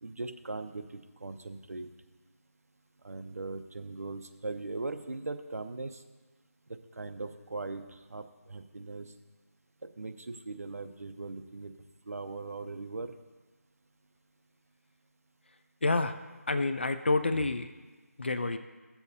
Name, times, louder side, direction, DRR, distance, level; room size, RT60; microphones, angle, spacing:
voice 1, 0.0-1.9 3.0-6.0 6.7-9.1 10.0-11.7 12.1-13.1, right 3 dB, 65° right, 8 dB, 0.7 m, -39 dB
voice 2, 15.8-16.2 16.5-17.7 18.2-18.6, left 3 dB, 45° left, 10 dB, 0.4 m, -28 dB
14.0 x 7.1 x 2.7 m, 1.2 s
figure-of-eight pair, 170°, 8 cm